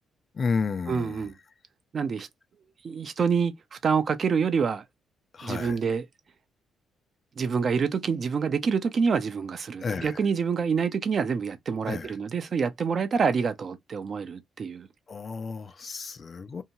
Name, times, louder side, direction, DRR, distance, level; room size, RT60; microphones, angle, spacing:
voice 1, 0.3-1.3 5.3-5.8 9.8-10.2 11.9-12.2 15.1-16.6, left 5 dB, 40° left, 0.4 m, -32 dB
voice 2, 0.9-1.3 1.9-2.3 2.8-3.5 3.8-4.8 5.4-6.0 7.4-14.9, right 6 dB, 50° right, 0.5 m, -26 dB
2.7 x 2.2 x 2.8 m
cardioid pair, 90°, 0 cm